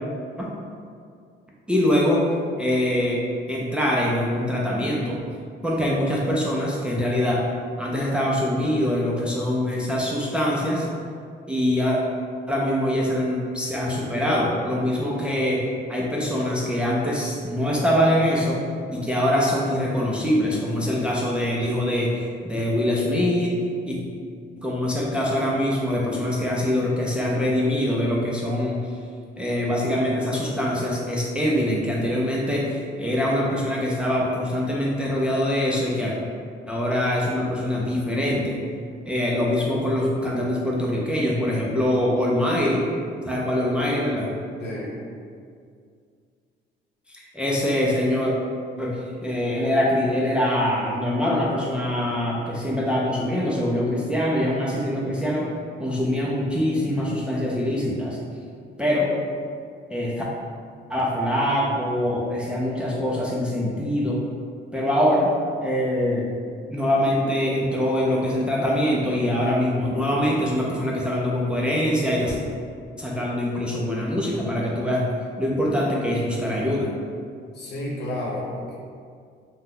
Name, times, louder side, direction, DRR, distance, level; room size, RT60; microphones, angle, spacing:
voice 1, 1.7-2.2 2.6-5.2 5.6-7.5 7.8-10.9 11.5-12.0 12.5-18.6 18.9-23.6 23.8-24.0 24.6-28.9 29.4-36.1 36.7-38.6 39.0-42.9 43.3-44.3 47.1-48.3 48.8-55.5 55.8-58.2 58.8-59.1 59.9-60.2 60.9-64.2 64.7-65.3 65.6-66.3 66.7-72.4 73.0-75.1 75.4-76.9, left 1 dB, 5° right, -4 dB, 0.4 m, -23 dB
voice 2, 44.6-45.0 77.5-78.8, left 1 dB, 60° left, -4 dB, 0.8 m, -31 dB
2.6 x 2.2 x 3.6 m, 2.2 s
cardioid pair, 90°, 20 cm